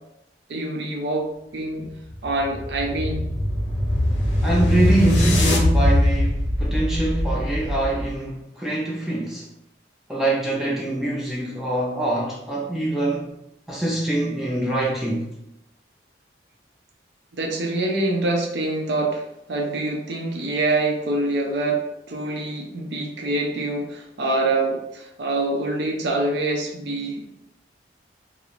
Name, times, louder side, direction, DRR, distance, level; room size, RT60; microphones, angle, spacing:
voice 1, 0.5-1.3 1.5-1.9 2.2-3.2 17.3-27.2, right 2 dB, 70° right, 0.5 m, -25 dB
sound 1, 2.1-8.2, left 1 dB, 80° left, 0.6 m, -22 dB
voice 2, 4.4-9.5 10.1-13.3 13.7-15.3, right 1 dB, ahead, 0.3 m, -24 dB
2.4 x 2.0 x 3.0 m
head